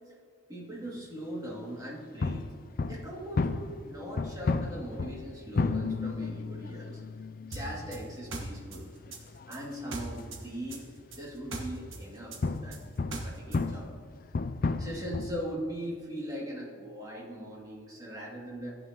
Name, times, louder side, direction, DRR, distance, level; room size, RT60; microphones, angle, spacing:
voice 1, 0.5-2.4 2.9-7.0 7.4-8.8 9.5-10.9 11.2-12.8 13.2-13.9 14.8-18.8, equal, 20° right, -5 dB, 2.4 m, -40 dB
sound 1, 2.2-11.1 11.9-15.5, left 3 dB, 45° left, 0.4 m, -33 dB
sound 2, 7.5-10.4 10.7-13.6, right 2 dB, 75° right, 1.5 m, -39 dB
15.0 x 9.1 x 2.9 m, 2.2 s
head